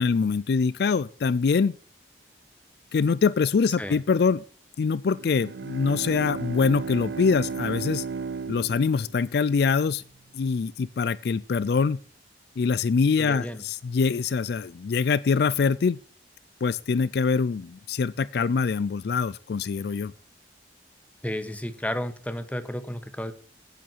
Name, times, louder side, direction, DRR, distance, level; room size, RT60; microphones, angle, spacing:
voice 1, 0.0-1.7 2.9-4.4 4.8-8.1 8.5-10.0 10.3-12.0 12.6-16.0 16.6-20.1, left 5 dB, 60° left, 0.4 m, -24 dB
Bowed string instrument, 5.1-9.9, right 5 dB, 65° right, 0.4 m, -35 dB
voice 2, 13.2-13.6 21.2-23.3, left 1 dB, 10° left, 1.1 m, -32 dB
10.5 x 8.7 x 4.5 m
head